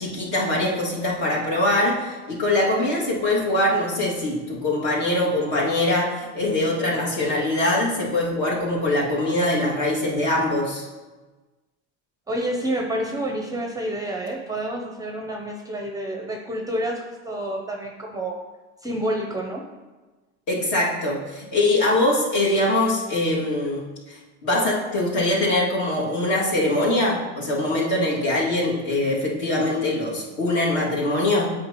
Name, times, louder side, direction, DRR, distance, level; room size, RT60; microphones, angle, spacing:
voice 1, 0.0-10.9 20.5-31.5, left 1 dB, 55° left, -4 dB, 2.3 m, -23 dB
voice 2, 12.3-18.4 18.8-19.7, right 1 dB, 10° right, 2 dB, 0.6 m, -28 dB
8.5 x 5.5 x 3.0 m, 1.2 s
supercardioid pair, 125°, 35 cm